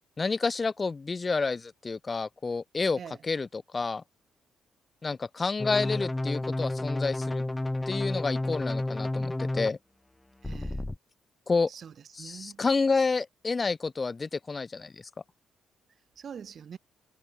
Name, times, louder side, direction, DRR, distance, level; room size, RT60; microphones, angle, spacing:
voice 1, 0.2-4.0 5.0-7.4 7.9-9.8 11.5-11.7 12.1-15.0, left 4 dB, 30° left, 2.4 m, -29 dB
sound 1, 5.6-9.7 10.4-11.0, left 2 dB, 10° left, 0.9 m, -31 dB
voice 2, 10.4-10.8 11.7-12.6 16.2-16.8, right 7 dB, 50° right, 3.1 m, -44 dB
cardioid pair, 90°, 0 cm